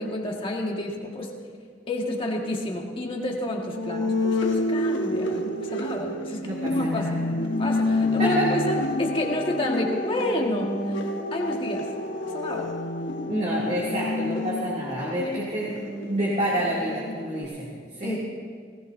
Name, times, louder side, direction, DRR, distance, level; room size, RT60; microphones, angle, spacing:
voice 1, 0.0-1.3 1.9-7.1 7.6-10.7 11.3-11.9 12.3-12.7 18.0-18.2, left 1 dB, 30° left, -1 dB, 1.8 m, -30 dB
sound 1, 3.7-17.4, left 1 dB, 75° left, 1.4 m, -28 dB
voice 2, 6.4-7.3 8.2-8.5 13.3-15.8 16.1-18.2, right 1 dB, 40° right, -7 dB, 2.7 m, -28 dB
Wind instrument woodwind instrument, 7.4-15.4, left 3 dB, 45° left, 0.5 m, -38 dB
19.5 x 18.5 x 2.7 m, 2.1 s
head